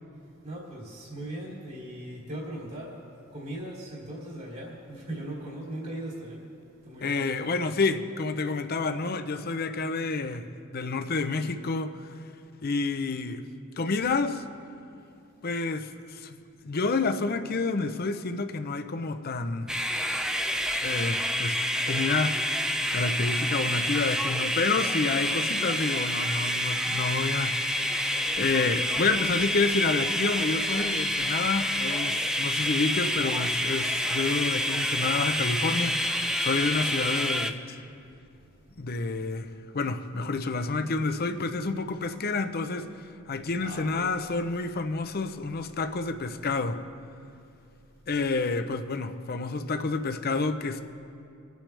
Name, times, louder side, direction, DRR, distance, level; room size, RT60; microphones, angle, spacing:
voice 1, 0.4-3.0 3.3-6.5 6.8-7.4 43.6-44.1, right 1 dB, 50° right, 2.8 m, -39 dB
voice 2, 7.0-10.5 10.7-12.2 12.6-13.4 13.8-14.4 15.4-19.8 20.8-37.8 38.8-39.5 39.7-46.8 48.1-50.8, left 3 dB, 45° left, 0.6 m, -29 dB
sound 1, 19.7-37.5, equal, 5° right, 0.4 m, -28 dB
26.5 x 9.2 x 3.3 m
head